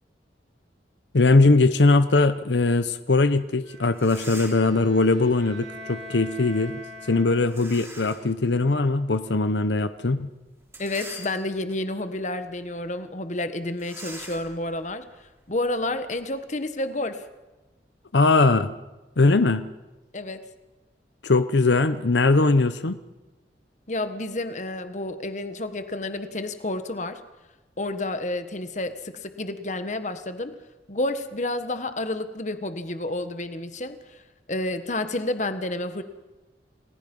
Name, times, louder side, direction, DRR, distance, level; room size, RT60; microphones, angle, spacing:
voice 1, 1.1-6.7 7.1-10.3 18.1-18.7 19.2-19.6 21.2-23.0, left 3 dB, 85° left, 11 dB, 0.9 m, -20 dB
sound 1, 3.6-3.7 3.9-4.8 7.5-8.3 8.8-8.9 10.6-11.7 12.3-12.5 12.8-12.9 13.8-16.2, right 2 dB, 15° right, 3.7 m, -43 dB
Bowed string instrument, 3.6-7.8, left 1 dB, 75° right, 7.5 m, -43 dB
voice 2, 10.8-15.1 15.5-17.2 20.1-20.5 23.9-27.2 27.8-30.6 30.9-34.2 34.5-36.0, left 2 dB, 40° left, 9 dB, 1.4 m, -30 dB
29.5 x 20.0 x 5.5 m, 1.1 s
head